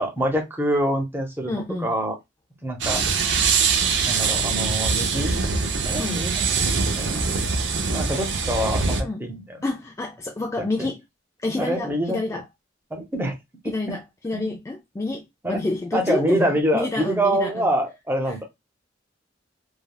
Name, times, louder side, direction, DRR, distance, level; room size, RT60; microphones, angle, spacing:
voice 1, 0.0-2.2 2.6-3.0 4.1-5.4 5.8-6.7 7.0-7.4 7.9-9.6 10.8-10.9 11.6-12.4 12.9-13.3 14.3-14.5 15.4-15.6 15.9-18.4, right 1 dB, 10° right, 0.8 m, -25 dB
voice 2, 1.5-1.9 6.0-6.2 9.0-9.2 9.6-11.0 11.4-12.4 13.7-17.7 18.3-18.4, left 2 dB, 15° left, 0.3 m, -28 dB
sound 1, 2.8-9.0, right 5 dB, 75° right, 0.5 m, -23 dB
3.4 x 2.2 x 2.2 m
head